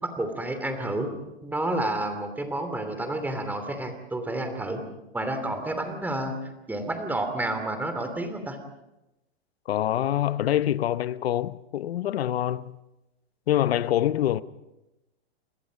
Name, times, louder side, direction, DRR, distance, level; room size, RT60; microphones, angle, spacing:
voice 1, 0.0-1.1 1.4-4.8 5.1-8.6, right 1 dB, 5° right, 2.9 m, -30 dB
voice 2, 9.7-12.8 13.5-14.4, left 12 dB, 70° left, 1.0 m, -25 dB
30.0 x 21.5 x 5.3 m
hypercardioid pair, 135°, 32 cm